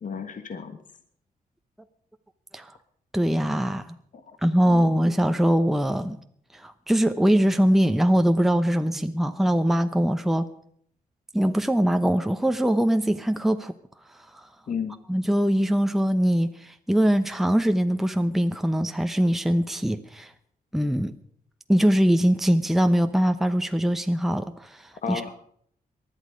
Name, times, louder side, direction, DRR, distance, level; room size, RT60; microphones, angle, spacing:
voice 1, 0.0-0.8 4.3-4.4 4.7-4.9 14.7-14.9 25.0-25.3, left 6 dB, 55° left, 9 dB, 1.5 m, -32 dB
voice 2, 3.1-4.0 4.4-6.2 6.5-10.5 11.3-13.7 15.1-20.3 20.7-21.1 21.7-25.2, equal, ahead, 8 dB, 0.8 m, -22 dB
19.5 x 11.5 x 5.2 m, 0.65 s
cardioid pair, 80°, 16 cm